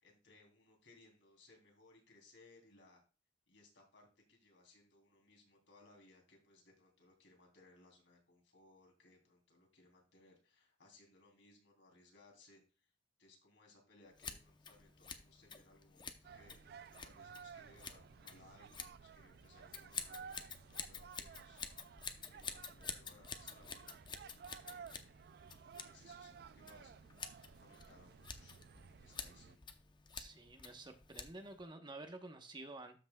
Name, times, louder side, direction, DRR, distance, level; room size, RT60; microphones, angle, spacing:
voice 1, 0.0-3.0 3.5-12.9 13.2-22.0 22.3-23.9 24.6-25.2 25.7-29.7, left 2 dB, 90° left, 1 dB, 3.2 m, -65 dB
Scissors, 14.1-31.6, left 6 dB, 25° left, 0.7 m, -50 dB
sound 1, 16.2-29.6, right 6 dB, 60° right, 0.3 m, -56 dB
voice 2, 30.1-33.0, right 2 dB, 25° right, 6 dB, 1.0 m, -51 dB
13.0 x 6.0 x 2.3 m, 0.34 s
head